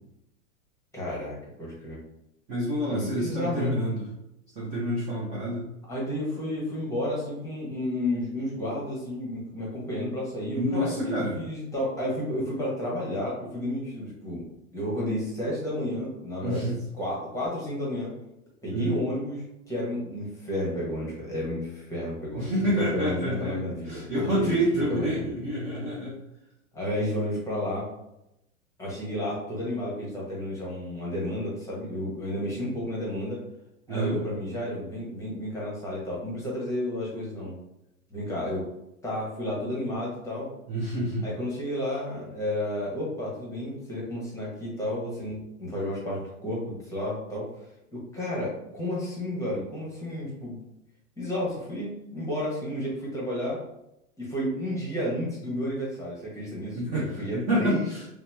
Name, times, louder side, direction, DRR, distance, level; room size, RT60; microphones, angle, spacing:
voice 1, 0.9-2.0 2.9-3.7 5.9-14.4 14.7-18.2 18.6-25.3 26.7-27.9 28.8-33.4 33.9-37.6 38.1-38.7 39.0-40.5 41.2-47.5 47.9-50.6 51.2-53.6 54.2-57.8, left 1 dB, 10° left, -5 dB, 0.8 m, -32 dB
voice 2, 2.5-4.0 4.6-5.7 10.6-11.4 16.4-16.8 18.7-19.0 22.4-26.2 33.9-34.2 40.7-41.3 56.7-58.0, equal, 20° right, -5 dB, 0.4 m, -28 dB
2.8 x 2.0 x 3.2 m, 0.85 s
hypercardioid pair, 140°, 41 cm